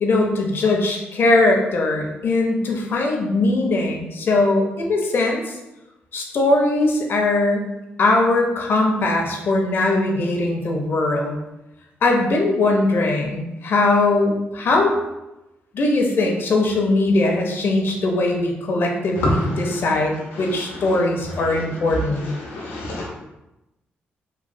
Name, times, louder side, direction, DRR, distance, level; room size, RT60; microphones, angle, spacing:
voice 1, 0.0-5.5 6.1-7.7 8.0-11.4 12.0-14.9 15.7-22.3, left 2 dB, 60° left, 1 dB, 0.6 m, -20 dB
voice 2, 22.4-23.1, left 1 dB, 90° left, -3 dB, 0.9 m, -24 dB
3.1 x 2.2 x 2.6 m, 0.96 s
supercardioid pair, 65°, 4 cm